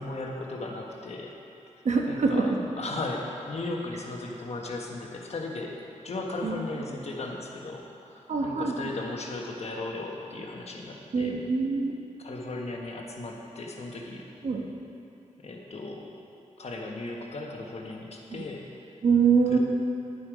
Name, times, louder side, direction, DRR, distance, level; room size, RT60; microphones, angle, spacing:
voice 1, 0.0-1.3 2.1-5.8 6.0-11.4 12.2-14.3 15.4-16.1 16.6-18.6 19.5-19.6, left 2 dB, 55° left, 0 dB, 1.3 m, -36 dB
voice 2, 1.8-2.6 6.4-6.6 8.3-8.7 11.1-11.9 14.4-14.6 18.3-18.4 19.0-19.6, right 5 dB, 70° right, 1 dB, 1.2 m, -24 dB
11.0 x 8.4 x 5.1 m, 2.7 s
wide cardioid pair, 135°, 13 cm